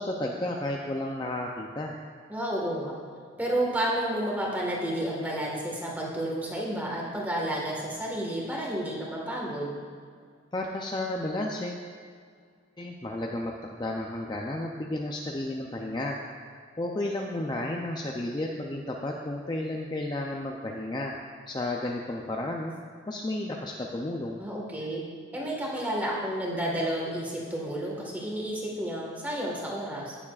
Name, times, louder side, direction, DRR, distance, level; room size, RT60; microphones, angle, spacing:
voice 1, 0.0-1.9 10.5-11.9 12.8-16.2 16.8-21.2 21.5-22.7 23.1-24.4, left 1 dB, 20° left, 0 dB, 0.5 m, -32 dB
voice 2, 2.3-2.9 3.4-9.8 24.4-25.0 25.3-30.2, right 1 dB, 10° right, -3 dB, 1.5 m, -31 dB
17.0 x 7.0 x 2.4 m, 2.1 s
head